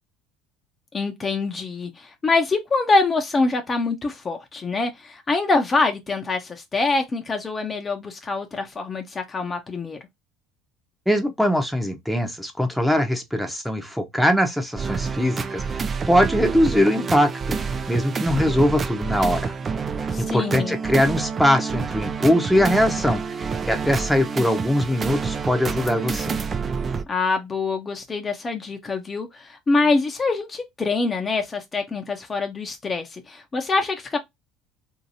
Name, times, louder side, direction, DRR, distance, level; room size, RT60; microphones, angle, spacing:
voice 1, 0.9-10.0 20.1-20.8 27.1-34.2, left 3 dB, 30° left, 0.7 m, -25 dB
voice 2, 11.1-17.6 17.9-19.5 20.0-26.4, equal, ahead, 0.8 m, -22 dB
sound 1, 14.8-27.0, right 5 dB, 35° right, 0.4 m, -28 dB
2.8 x 2.8 x 2.7 m
hypercardioid pair, 75°, 0 cm